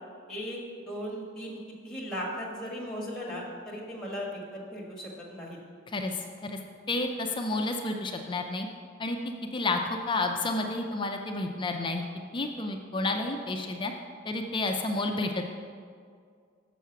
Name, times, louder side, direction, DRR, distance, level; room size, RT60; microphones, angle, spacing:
voice 1, 0.3-0.6 0.9-1.6 1.8-5.6 13.0-13.1, equal, 5° left, -5 dB, 1.6 m, -37 dB
voice 2, 5.9-6.6 6.9-8.7 9.0-9.2 9.5-12.0 12.3-13.9 14.3-15.5, left 2 dB, 25° left, 4 dB, 0.5 m, -30 dB
6.5 x 6.1 x 7.0 m, 2.2 s
head